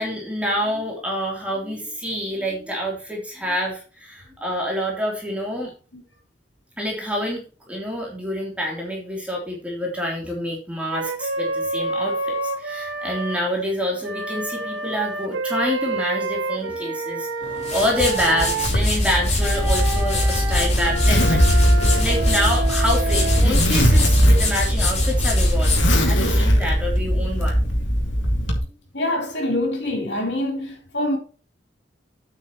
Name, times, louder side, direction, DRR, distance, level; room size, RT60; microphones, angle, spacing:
voice 1, 0.0-5.7 6.8-17.3 17.5-27.6, equal, 5° right, 3.4 m, -27 dB
Wind instrument woodwind instrument, 10.9-13.4 14.0-18.7 19.3-24.7, right 2 dB, 80° right, 2.2 m, -29 dB
sound 1, 17.4-26.8, left 2 dB, 35° left, 4.1 m, -26 dB
Zipper (clothing), 18.7-28.6, equal, 90° left, 2.8 m, -19 dB
voice 2, 28.9-31.2, left 1 dB, 65° left, 3.7 m, -25 dB
9.8 x 8.6 x 3.1 m
head